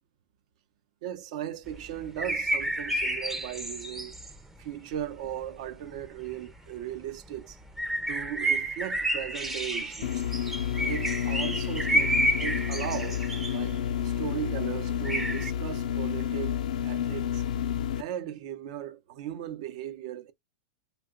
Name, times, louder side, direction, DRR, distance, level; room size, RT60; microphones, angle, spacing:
voice 1, 1.0-4.2 4.6-7.6 8.1-10.3 10.8-17.5 18.0-20.3, right 11 dB, 60° right, 0.6 m, -37 dB
sound 1, 1.7-4.6 4.9-5.5 5.8-6.5 6.9-15.5, right 1 dB, 5° right, 0.5 m, -30 dB
sound 2, 10.0-18.0, left 9 dB, 85° left, 0.5 m, -30 dB
2.8 x 2.2 x 3.7 m
supercardioid pair, 140°, 4 cm